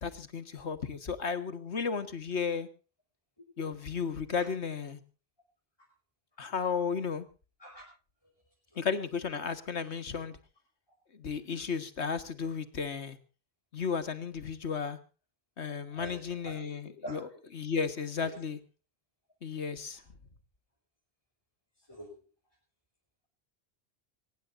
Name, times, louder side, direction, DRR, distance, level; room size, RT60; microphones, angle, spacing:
voice 1, 0.0-2.7 3.6-5.0 6.4-7.3 8.8-10.4 11.1-13.2 13.7-15.0 15.6-17.2 17.6-18.6 19.4-20.0, left 6 dB, 85° left, 12 dB, 1.9 m, -34 dB
voice 2, 15.9-16.7 17.0-17.4 18.2-18.3 19.9-20.0 21.8-22.2, equal, 20° left, -3 dB, 6.0 m, -46 dB
23.5 x 19.5 x 2.6 m, 0.34 s
omnidirectional pair, 1.1 m